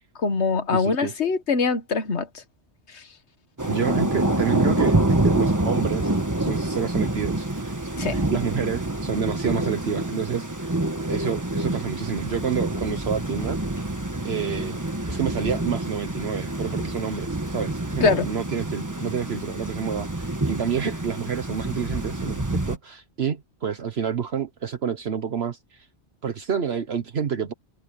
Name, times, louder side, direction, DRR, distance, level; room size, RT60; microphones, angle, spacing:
voice 1, 0.2-2.3 2.9-3.0 8.0-8.2 18.0-18.2, left 4 dB, 75° left, 1.7 m, -23 dB
voice 2, 0.7-1.1 3.7-7.7 8.1-10.8 11.1-13.6 14.2-25.9 26.2-27.5, right 7 dB, 65° right, 1.3 m, -29 dB
Thunder / Rain, 3.6-22.8, right 2 dB, 15° right, 1.4 m, -27 dB
omnidirectional pair, 1.1 m